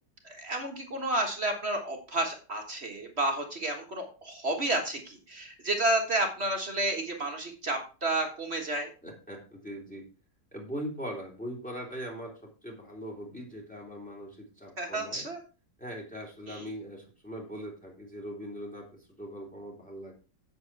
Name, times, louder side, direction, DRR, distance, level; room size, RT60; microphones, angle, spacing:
voice 1, 0.2-8.9 14.8-15.4 16.5-16.6, right 2 dB, 35° right, 3 dB, 1.7 m, -31 dB
voice 2, 9.0-10.0 10.5-15.2 15.8-20.1, equal, 5° left, -1 dB, 3.3 m, -41 dB
8.1 x 8.0 x 4.7 m, 0.35 s
omnidirectional pair, 1.9 m